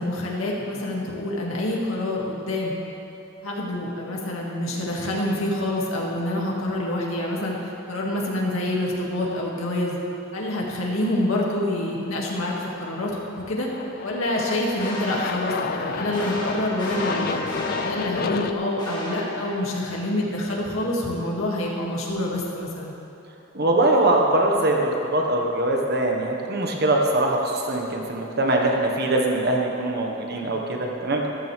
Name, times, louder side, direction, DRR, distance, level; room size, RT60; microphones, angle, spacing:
voice 1, 0.0-2.7 3.4-10.0 10.3-13.7 14.0-17.4 17.8-22.9, left 1 dB, 90° left, -3 dB, 2.2 m, -27 dB
Aircraft, 12.8-18.5, left 5 dB, 45° left, 0.4 m, -32 dB
sound 1, 14.8-20.1, left 1 dB, 20° left, 2.3 m, -34 dB
voice 2, 23.5-31.2, right 1 dB, 50° right, 1 dB, 1.4 m, -22 dB
14.5 x 13.0 x 3.4 m, 2.9 s
head